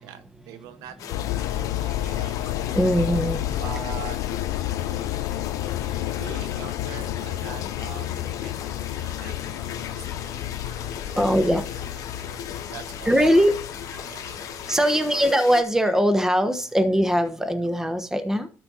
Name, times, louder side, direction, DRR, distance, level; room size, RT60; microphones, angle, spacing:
voice 1, 0.0-1.0 1.5-2.4 3.6-4.2 6.2-8.6 8.9-13.5 14.0-15.2, right 10 dB, 85° right, 0.9 m, -44 dB
sound 1, 1.0-15.6, left 9 dB, 65° left, 0.9 m, -37 dB
sound 2, 1.1-14.7, left 13 dB, 85° left, 0.4 m, -31 dB
sound 3, 1.8-15.3, left 1 dB, 10° left, 3.5 m, -50 dB
voice 2, 2.7-3.4 11.2-11.7 13.0-13.5 14.7-18.5, equal, 10° right, 1.2 m, -21 dB
13.0 x 4.5 x 4.0 m
supercardioid pair, 80°, 6 cm